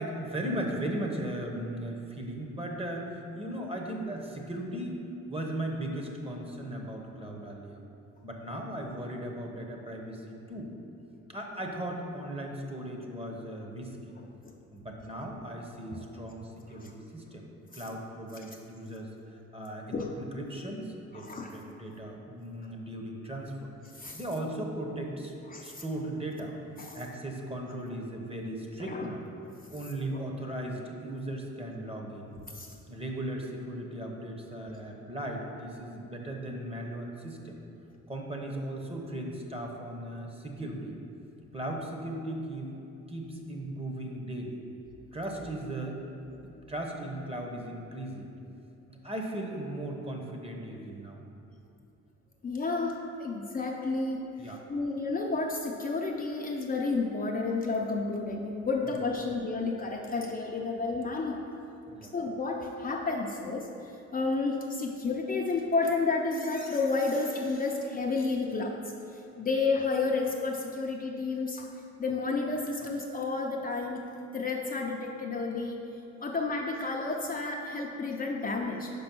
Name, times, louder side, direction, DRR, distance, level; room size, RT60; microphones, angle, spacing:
voice 1, 0.0-5.0 5.3-7.8 8.2-10.7 11.3-14.1 14.7-17.5 17.7-23.7 24.1-25.3 25.6-26.5 26.9-29.3 29.7-32.3 32.9-37.6 38.1-41.0 41.5-42.7 43.1-44.6 45.1-46.0 46.7-48.3 48.9-51.3 54.4-54.6 59.2-59.3 61.9-62.1, right 1 dB, 20° right, 1 dB, 1.0 m, -37 dB
voice 2, 21.1-21.6 23.9-24.2 25.5-25.8 26.8-27.0 28.9-29.1 30.1-30.2 32.5-32.7 52.4-54.2 54.7-61.4 62.0-68.8 69.1-71.7 72.0-74.0 74.3-75.8 76.2-78.9, left 3 dB, 30° left, 0 dB, 0.6 m, -31 dB
5.3 x 5.0 x 6.1 m, 2.8 s
cardioid pair, 90°, 30 cm